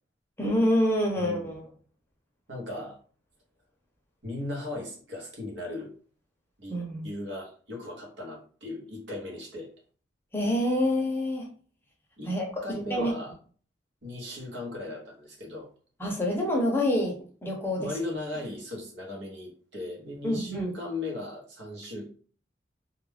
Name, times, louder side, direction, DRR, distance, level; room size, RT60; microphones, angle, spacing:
voice 1, 0.4-1.6 6.7-7.1 10.3-11.5 12.2-12.6 12.9-13.1 16.0-17.9 20.2-20.7, left 1 dB, 15° left, 0 dB, 0.6 m, -27 dB
voice 2, 1.2-1.6 2.5-3.0 4.2-5.9 6.6-6.8 7.0-9.7 12.2-12.3 12.6-13.3 14.0-15.7 17.8-22.1, left 2 dB, 75° right, 0 dB, 0.9 m, -37 dB
2.4 x 2.1 x 3.2 m, 0.42 s
head